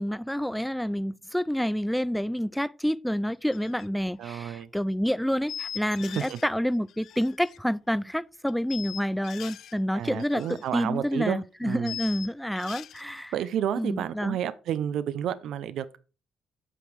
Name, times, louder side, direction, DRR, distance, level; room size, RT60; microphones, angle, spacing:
voice 1, 0.0-13.3 13.8-14.4, equal, ahead, 0.4 m, -28 dB
sound 1, 3.5-3.9 4.1-4.4 5.5-6.5 6.7-7.6 8.5-9.7 10.0-10.7 10.9-11.0 11.8-13.0, left 10 dB, 75° left, 0.4 m, -40 dB
voice 2, 4.2-4.7 6.1-6.4 9.9-12.0 13.3-16.0, right 10 dB, 75° right, 0.5 m, -31 dB
8.5 x 5.0 x 4.6 m
cardioid pair, 90°, 0 cm